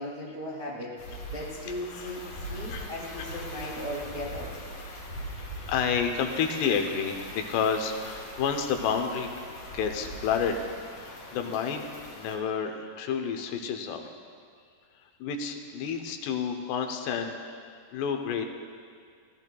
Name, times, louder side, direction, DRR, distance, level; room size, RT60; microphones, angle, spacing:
voice 1, 0.0-2.2 2.5-4.5, left 1 dB, 85° right, -6 dB, 0.4 m, -37 dB
sound 1, 1.0-12.4, equal, 50° left, 3.9 m, -41 dB
voice 2, 5.4-9.3 9.7-10.6 10.9-14.1 15.2-17.4 17.9-18.5, left 6 dB, 85° left, 4 dB, 2.9 m, -30 dB
18.5 x 14.0 x 2.3 m, 2.2 s
omnidirectional pair, 4.8 m